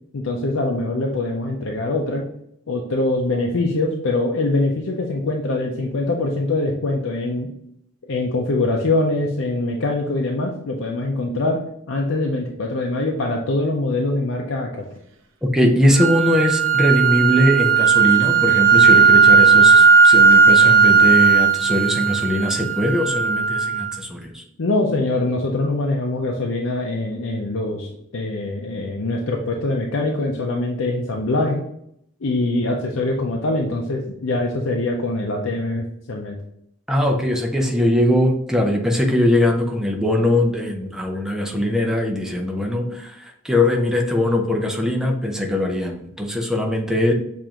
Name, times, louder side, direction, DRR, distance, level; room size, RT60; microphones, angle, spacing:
voice 1, 0.1-2.2 2.7-7.5 8.1-11.6 11.9-14.9 24.6-31.6 32.2-36.4, left 2 dB, 85° left, 1 dB, 0.6 m, -23 dB
voice 2, 15.5-24.4 36.9-47.1, left 1 dB, 5° right, 1 dB, 0.5 m, -20 dB
sound 1, 16.0-24.0, right 6 dB, 85° right, 0.7 m, -15 dB
6.9 x 2.5 x 2.9 m, 0.75 s
head